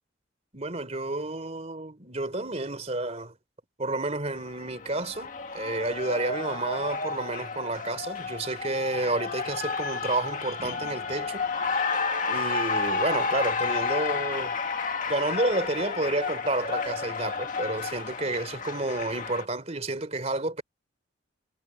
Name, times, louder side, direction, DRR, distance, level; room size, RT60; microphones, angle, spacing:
voice 1, 0.5-3.3 3.8-11.5 12.3-14.5 15.1-20.6, right 2 dB, 35° right, 3.3 m, -30 dB
Cheering, 4.3-19.4, left 4 dB, 40° left, 1.9 m, -31 dB
head